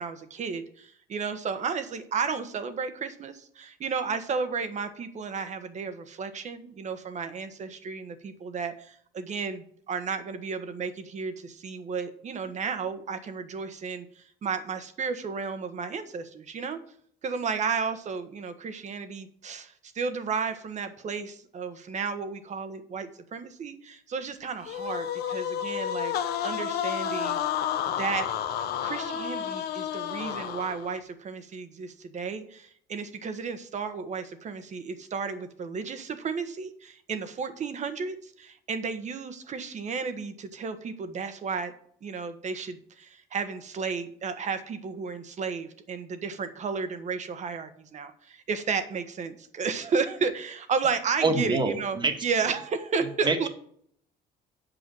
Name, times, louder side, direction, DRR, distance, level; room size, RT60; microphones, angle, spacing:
voice 1, 0.0-16.8 17.2-26.1 26.4-27.4 27.9-28.3 28.8-41.7 42.0-53.5, right 5 dB, 45° right, 10 dB, 1.3 m, -33 dB
sound 1, 24.7-31.0, left 9 dB, 70° left, 0.9 m, -31 dB
voice 2, 51.2-52.1 53.2-53.5, right 3 dB, 25° right, 5 dB, 1.6 m, -25 dB
8.1 x 5.6 x 7.7 m, 0.62 s
cardioid pair, 110°, 17 cm